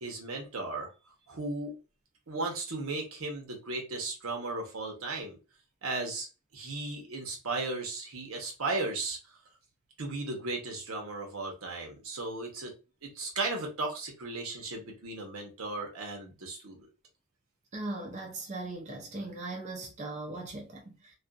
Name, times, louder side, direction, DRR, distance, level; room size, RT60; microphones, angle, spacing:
voice 1, 0.0-0.9 1.3-1.7 2.3-5.3 5.8-6.3 6.5-9.2 10.0-12.7 13.0-16.9, right 3 dB, 85° right, 0.9 m, -35 dB
voice 2, 17.7-21.1, right 2 dB, 35° right, 0.5 m, -39 dB
2.5 x 2.4 x 2.3 m
head